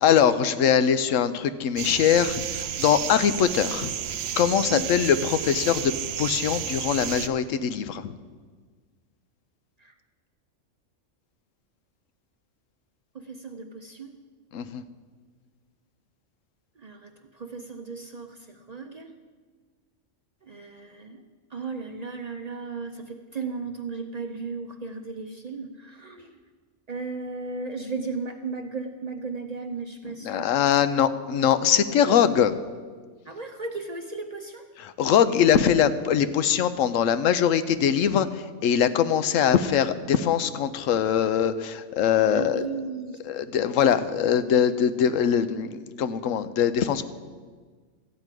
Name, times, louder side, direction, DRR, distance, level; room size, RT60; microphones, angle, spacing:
voice 1, 0.0-3.9 4.4-5.9 6.2-8.1 14.5-14.8 30.2-32.5 35.0-42.6 43.3-47.0, left 8 dB, 85° left, 12 dB, 1.0 m, -22 dB
sound 1, 1.8-7.3, right 10 dB, 90° right, 1.0 m, -32 dB
voice 2, 4.6-4.9 9.8-9.9 13.1-14.2 16.8-19.1 20.4-21.2 21.5-26.3 26.9-30.5 33.2-34.7 42.3-43.2, right 4 dB, 45° right, 5 dB, 0.6 m, -35 dB
14.0 x 4.7 x 9.0 m, 1.5 s
omnidirectional pair, 1.3 m